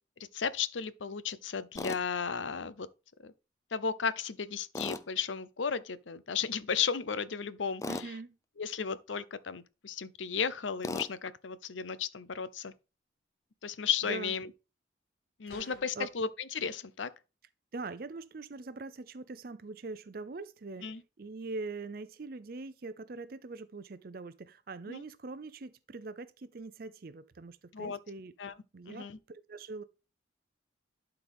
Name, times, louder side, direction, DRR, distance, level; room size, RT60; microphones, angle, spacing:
voice 1, 0.3-2.9 3.2-3.3 3.7-8.1 8.6-12.7 13.6-14.5 15.4-17.1 20.8-21.0 24.9-25.0 27.7-28.0 28.4-28.5 28.9-29.2, left 6 dB, 85° left, 0.7 m, -34 dB
Tools, 1.8-2.0 4.7-5.1 7.8-8.1 10.8-11.1, left 2 dB, 15° left, 0.4 m, -36 dB
voice 2, 7.9-8.4 14.0-14.3 15.5-16.1 17.7-20.9 21.2-28.3 28.7-29.8, right 3 dB, 50° right, 0.5 m, -42 dB
sound 1, 15.5-16.0, left 2 dB, 50° left, 1.1 m, -50 dB
12.0 x 4.6 x 3.5 m
head